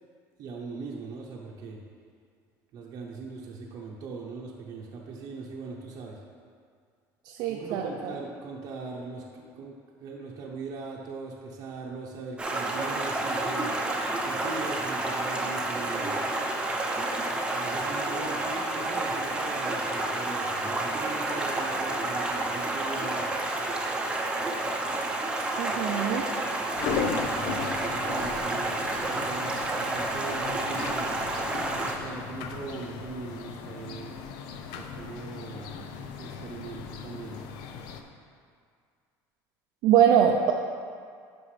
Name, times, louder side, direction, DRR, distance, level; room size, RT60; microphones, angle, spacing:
voice 1, 0.4-1.8 2.7-6.2 7.5-13.7 14.2-16.2 17.5-23.3 27.3-31.1 31.8-34.2 34.7-35.8 36.1-37.4, right 4 dB, 50° right, -3 dB, 0.8 m, -40 dB
voice 2, 7.3-7.8 25.6-26.3 39.8-40.5, right 9 dB, 70° right, 1 dB, 0.5 m, -22 dB
Stream, 12.4-32.0, right 2 dB, 10° right, 0.7 m, -30 dB
sound 1, 26.8-38.0, left 6 dB, 75° left, 0.6 m, -37 dB
11.5 x 5.1 x 3.3 m, 2.1 s
cardioid pair, 140°, 8 cm